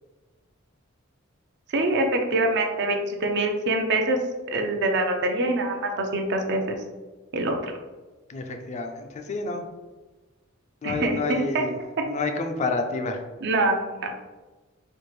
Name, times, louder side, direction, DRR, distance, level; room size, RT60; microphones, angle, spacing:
voice 1, 1.7-4.2 4.5-6.8 7.3-7.7 10.8-11.6 12.0-12.1 13.4-14.1, right 2 dB, 55° right, 4 dB, 0.5 m, -25 dB
voice 2, 8.3-9.6 10.8-11.7 12.1-13.2, left 3 dB, 35° left, 5 dB, 0.4 m, -29 dB
4.4 x 2.4 x 3.1 m, 1.2 s
head